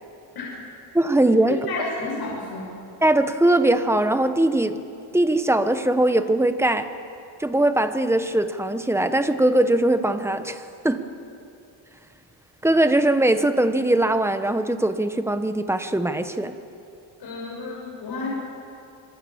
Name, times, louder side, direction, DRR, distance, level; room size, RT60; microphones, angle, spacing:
voice 1, 0.9-1.6 3.0-4.8 5.1-6.9 7.4-11.0 12.6-16.6, right 1 dB, 5° right, 9 dB, 1.3 m, -21 dB
voice 2, 1.7-2.7 17.2-18.3, left 3 dB, 60° left, -3 dB, 6.4 m, -31 dB
27.5 x 23.5 x 7.3 m, 2.6 s
cardioid pair, 120°, 43 cm